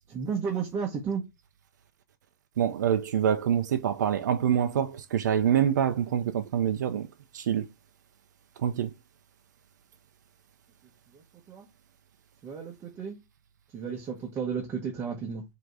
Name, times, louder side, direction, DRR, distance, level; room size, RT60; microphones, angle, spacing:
voice 1, 0.1-1.2 11.1-11.7 12.4-13.2 13.7-15.4, right 6 dB, 25° right, 1.0 m, -33 dB
voice 2, 2.6-7.1 7.3-7.7 8.6-8.9, right 9 dB, 85° right, 0.5 m, -26 dB
4.7 x 2.9 x 2.4 m
hypercardioid pair, 140°, 9 cm